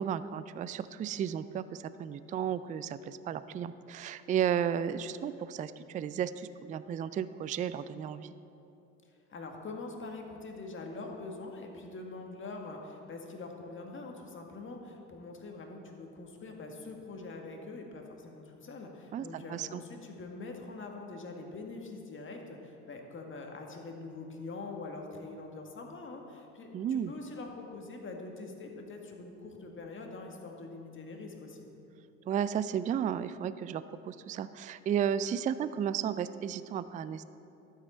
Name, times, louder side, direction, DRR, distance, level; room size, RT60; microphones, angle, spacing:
voice 1, 0.0-8.3 19.1-19.8 26.7-27.1 32.3-37.2, right 9 dB, 25° right, 14 dB, 0.3 m, -33 dB
voice 2, 9.3-31.7, left 3 dB, 35° left, 2 dB, 1.8 m, -44 dB
12.5 x 8.1 x 4.4 m, 2.8 s
hypercardioid pair, 60°, 37 cm